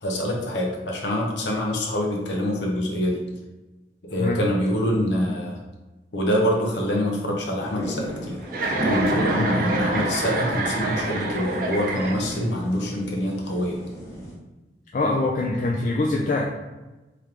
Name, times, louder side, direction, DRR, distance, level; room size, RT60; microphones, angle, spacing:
voice 1, 0.0-3.2 4.0-5.6 6.1-8.4 8.9-13.8, equal, 85° left, -1 dB, 0.7 m, -25 dB
sound 1, 7.6-14.3, right 1 dB, 15° left, 0.8 m, -33 dB
Chuckle chortle, 8.5-12.5, right 2 dB, 50° right, 0.5 m, -27 dB
voice 2, 14.9-16.5, left 2 dB, 45° left, -2 dB, 0.3 m, -23 dB
3.3 x 3.1 x 3.7 m, 1.1 s
head